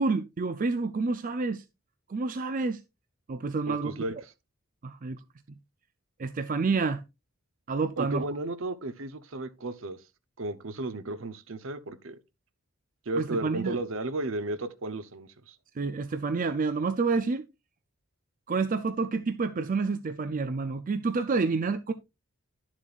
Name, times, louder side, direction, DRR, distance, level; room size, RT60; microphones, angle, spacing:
voice 1, 0.0-1.6 2.1-2.8 3.3-3.9 4.8-5.2 6.2-7.0 7.7-8.2 13.2-13.8 15.8-17.5 18.5-21.9, right 4 dB, 40° right, 0.4 m, -28 dB
voice 2, 3.7-4.1 8.0-10.0 10.4-12.2 13.1-15.6, right 2 dB, 65° right, 0.8 m, -34 dB
11.5 x 7.3 x 2.4 m
head